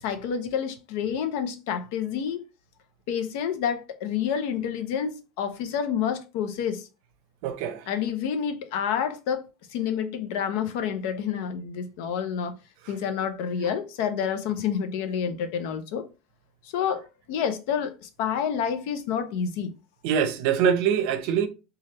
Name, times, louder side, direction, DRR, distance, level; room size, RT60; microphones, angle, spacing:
voice 1, 0.0-2.5 3.1-6.9 7.9-9.4 9.7-12.6 12.9-16.0 16.6-19.7, left 8 dB, 75° left, 0.5 m, -28 dB
voice 2, 7.4-7.9 13.6-13.7 20.0-21.5, right 8 dB, 65° right, 0.5 m, -24 dB
3.3 x 2.3 x 2.9 m
cardioid pair, 170°, 0 cm